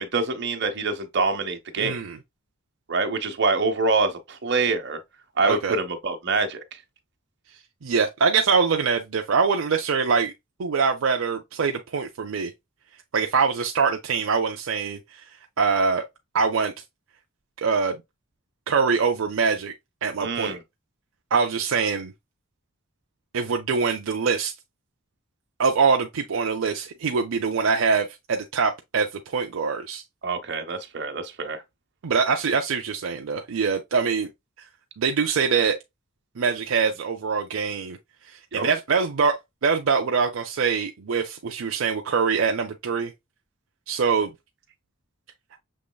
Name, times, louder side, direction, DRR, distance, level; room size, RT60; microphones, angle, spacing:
voice 1, 0.0-2.0 2.9-5.0 5.4-6.6 20.2-20.6 30.2-31.6 38.5-38.6, right 3 dB, 55° right, 1.0 m, -25 dB
voice 2, 1.8-2.2 5.4-5.7 7.8-10.3 10.6-12.5 13.1-15.2 15.6-16.0 16.3-16.7 17.6-18.0 18.7-19.7 20.0-20.6 21.3-22.1 23.3-24.5 25.6-30.0 32.0-34.3 35.0-35.8 36.4-38.0 38.3-43.1 43.9-44.3, right 5 dB, 75° right, 0.5 m, -24 dB
6.5 x 3.1 x 2.2 m
head